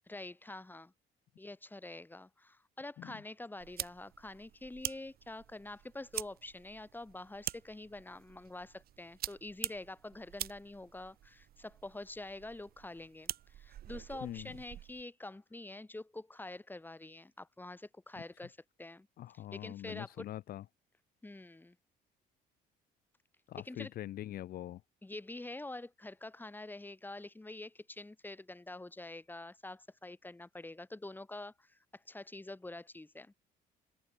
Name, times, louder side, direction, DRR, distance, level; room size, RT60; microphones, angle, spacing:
voice 1, 0.1-0.9 1.4-19.1 19.5-20.3 21.2-21.8 23.6-23.9 25.0-33.3, left 2 dB, 10° left, 5.9 m, -46 dB
sound 1, 3.6-15.0, right 12 dB, 65° right, 3.7 m, -45 dB
voice 2, 14.2-14.5 19.2-20.6 23.5-24.8, left 13 dB, 60° left, 0.9 m, -43 dB
open air
cardioid pair, 110°, 17 cm